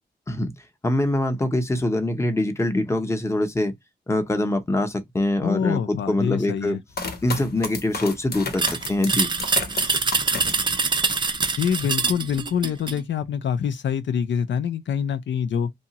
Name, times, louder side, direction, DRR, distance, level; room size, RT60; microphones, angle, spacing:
voice 1, 0.8-3.7 4.1-6.8 7.2-9.3, left 1 dB, 15° left, 0.7 m, -24 dB
voice 2, 5.4-6.8 11.6-15.7, left 8 dB, 85° left, 0.4 m, -25 dB
sound 1, 6.9-11.2 11.7-12.3, left 4 dB, 60° left, 0.8 m, -33 dB
sound 2, 8.6-13.0, right 4 dB, 25° right, 0.4 m, -24 dB
2.8 x 2.3 x 2.9 m
wide cardioid pair, 100°, 18 cm